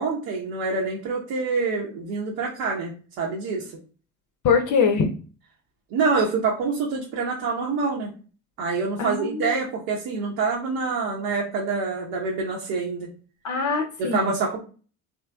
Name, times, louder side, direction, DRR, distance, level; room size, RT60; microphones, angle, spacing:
voice 1, 0.0-2.9 3.2-3.7 5.9-8.1 8.6-13.1 14.0-14.6, right 4 dB, 70° right, -2 dB, 1.0 m, -26 dB
voice 2, 4.4-5.1 9.0-9.5 13.4-14.4, left 5 dB, 45° left, 5 dB, 0.6 m, -23 dB
3.3 x 3.1 x 2.2 m, 0.38 s
hypercardioid pair, 65°, 44 cm